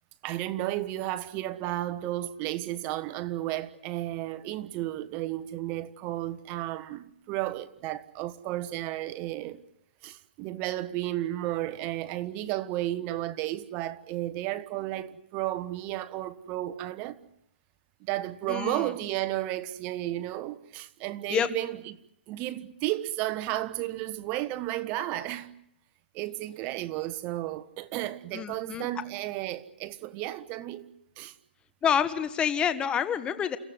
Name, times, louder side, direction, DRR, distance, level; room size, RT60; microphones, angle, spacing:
voice 1, 0.2-9.6 10.0-17.2 18.0-22.0 22.3-25.5 26.1-30.9 31.2-31.4, right 15 dB, 30° right, 1.2 m, -33 dB
voice 2, 18.5-18.9 21.3-21.5 28.3-28.9 31.8-33.6, left 8 dB, 15° left, 1.5 m, -27 dB
29.5 x 15.0 x 9.6 m
hypercardioid pair, 140°, 6 cm